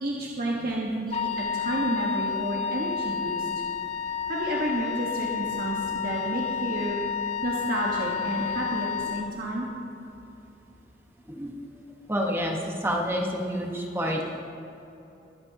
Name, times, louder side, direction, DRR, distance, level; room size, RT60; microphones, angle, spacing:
voice 1, 0.0-3.5 4.3-7.0 7.4-9.7, right 1 dB, 55° right, -3 dB, 1.3 m, -30 dB
Wind instrument woodwind instrument, 1.1-9.3, left 6 dB, 40° left, 0.5 m, -30 dB
voice 2, 12.1-14.2, equal, 15° right, 0 dB, 1.2 m, -29 dB
21.5 x 9.6 x 2.8 m, 2.9 s
head